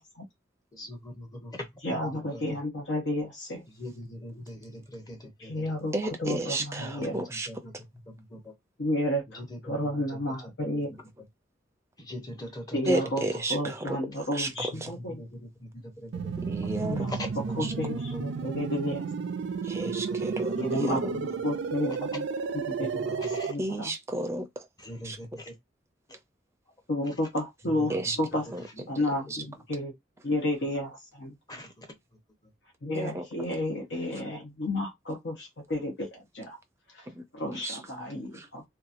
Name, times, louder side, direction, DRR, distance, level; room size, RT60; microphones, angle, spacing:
voice 1, 0.7-1.7 2.3-2.6 3.7-5.8 6.8-7.7 8.1-8.5 9.3-9.7 10.1-10.2 12.0-13.4 14.7-16.3 17.1-17.8 18.1-18.2 19.7-21.1 22.8-23.5 24.8-25.6 26.1-26.2 27.6-27.9 28.7-28.8 31.5-31.9, left 1 dB, 20° left, 0.8 m, -42 dB
voice 2, 1.8-3.6 5.4-7.2 8.8-11.0 12.7-13.2 13.5-15.2 16.8-17.2 17.6-19.1 20.5-22.3 22.5-23.9 26.9-28.5 28.9-29.9 30.2-31.3 32.8-36.6 36.9-38.6, left 1 dB, 75° left, 0.8 m, -32 dB
voice 3, 5.9-7.5 12.9-13.6 13.8-14.0 14.3-14.5 14.8-14.9 16.4-17.1 17.6-17.7 19.6-20.6 20.9-21.1 23.6-24.6 25.0-25.2 27.9-28.2 32.9-33.2 37.1-37.2 37.5-37.8 38.1-38.5, right 2 dB, 15° right, 0.4 m, -32 dB
sound 1, 16.1-23.5, right 5 dB, 85° right, 0.4 m, -32 dB
2.9 x 2.2 x 2.5 m
head